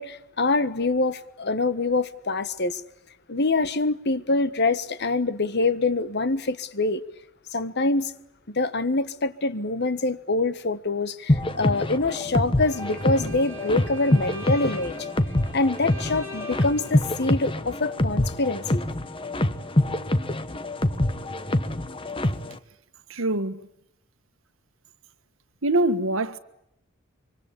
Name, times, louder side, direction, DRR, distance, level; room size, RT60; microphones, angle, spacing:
voice 1, 0.0-2.8 3.3-7.0 7.5-8.1 8.5-15.1 15.5-18.9, left 3 dB, 55° left, 1.4 m, -25 dB
sound 1, 11.3-22.6, left 1 dB, 25° left, 1.3 m, -26 dB
Bowed string instrument, 12.6-17.3, equal, 10° right, 7.0 m, -42 dB
voice 2, 23.1-23.6 25.6-26.4, right 1 dB, 80° right, 1.6 m, -24 dB
25.0 x 25.0 x 8.7 m
head